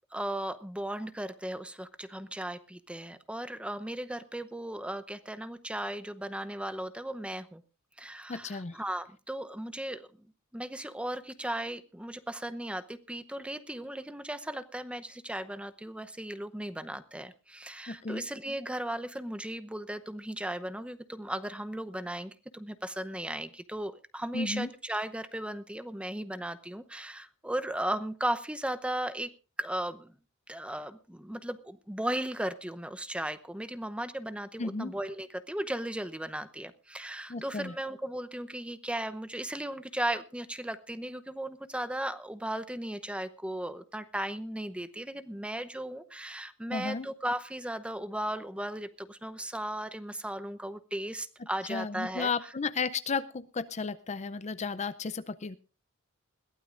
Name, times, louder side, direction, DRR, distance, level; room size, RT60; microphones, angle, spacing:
voice 1, 0.1-7.6 8.0-10.1 10.5-29.3 29.6-30.1 30.5-52.3, right 1 dB, 5° right, 11 dB, 0.8 m, -36 dB
voice 2, 8.3-8.8 17.9-18.3 24.3-24.7 34.6-34.9 37.3-37.7 46.7-47.1 51.7-55.6, left 4 dB, 35° left, 12 dB, 0.6 m, -33 dB
21.5 x 15.5 x 2.6 m, 0.33 s
head